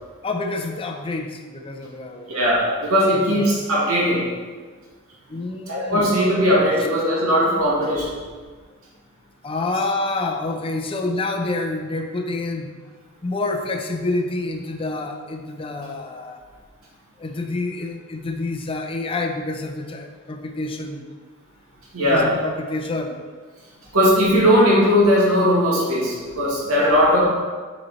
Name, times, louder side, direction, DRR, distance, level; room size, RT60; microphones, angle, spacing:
voice 1, 0.2-2.3 3.1-3.6 5.3-6.1 6.8-6.9 9.4-12.7 13.2-16.4 17.2-21.1 22.0-23.2, left 2 dB, 25° left, 4 dB, 0.5 m, -28 dB
voice 2, 2.3-4.2 5.7-8.2 21.9-22.3 23.9-27.2, equal, 80° right, -5 dB, 2.1 m, -18 dB
8.2 x 4.2 x 4.2 m, 1.5 s
head